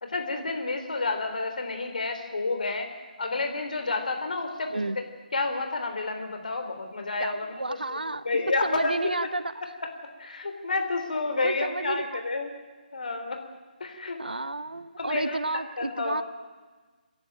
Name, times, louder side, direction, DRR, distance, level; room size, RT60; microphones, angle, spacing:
voice 1, 0.0-2.9 3.2-4.7 5.3-7.5 7.9-8.0 8.3-8.9 10.2-12.5 12.9-13.4 13.8-14.2 15.0-15.4 15.8-16.2, left 3 dB, 55° left, 5 dB, 3.4 m, -30 dB
voice 2, 7.2-8.3 8.6-9.4 11.4-12.2 14.2-16.2, right 2 dB, 70° right, 15 dB, 1.0 m, -31 dB
28.0 x 11.0 x 9.1 m, 1.4 s
figure-of-eight pair, 145°, 5 cm